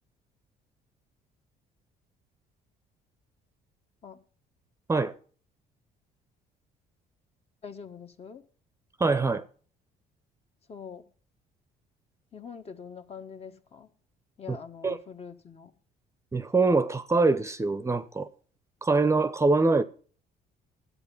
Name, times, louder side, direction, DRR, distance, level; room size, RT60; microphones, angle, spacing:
voice 1, 7.6-8.4 10.7-11.1 12.3-13.9 14.4-15.7, left 6 dB, 35° left, 1.3 m, -44 dB
voice 2, 9.0-9.4 14.5-14.6 14.8-15.0 16.3-18.3 18.8-19.8, right 3 dB, 15° right, 0.7 m, -24 dB
11.0 x 8.3 x 7.0 m
cardioid pair, 110°, 17 cm